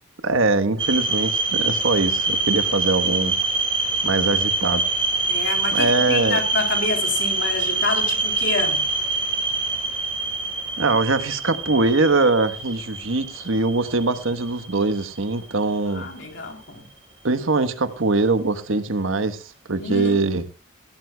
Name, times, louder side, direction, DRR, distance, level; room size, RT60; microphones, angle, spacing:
voice 1, 0.2-3.4 4.0-4.9 5.7-6.4 10.8-16.1 17.2-20.4, right 3 dB, 85° right, 1.2 m, -22 dB
sound 1, 0.8-15.7, right 3 dB, 25° right, 4.8 m, -25 dB
voice 2, 5.3-8.8 15.9-16.9 19.8-20.3, left 3 dB, 60° left, 3.5 m, -28 dB
16.5 x 16.0 x 2.3 m
head